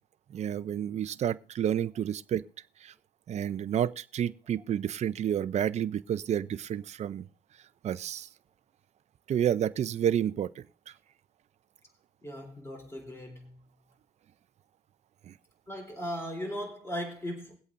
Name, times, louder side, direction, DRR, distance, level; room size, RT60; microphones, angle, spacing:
voice 1, 0.3-2.4 2.8-2.9 3.3-7.2 7.8-8.3 9.3-10.6 15.3-15.4, right 10 dB, 40° right, 0.5 m, -30 dB
voice 2, 12.2-13.6 15.7-17.6, equal, 15° left, 3.7 m, -38 dB
21.5 x 8.3 x 2.6 m
cardioid pair, 110°, 17 cm